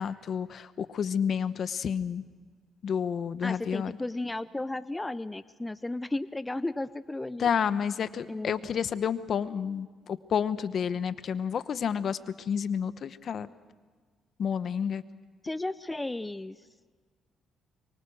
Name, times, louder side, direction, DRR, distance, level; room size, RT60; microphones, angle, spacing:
voice 1, 0.0-2.2 2.8-3.9 7.4-13.5 14.4-15.0, left 7 dB, 55° left, 13 dB, 1.0 m, -30 dB
voice 2, 3.4-7.5 8.3-8.7 15.4-16.6, left 2 dB, 15° left, 15 dB, 0.6 m, -34 dB
24.0 x 23.5 x 6.4 m, 1.6 s
cardioid pair, 90°, 0 cm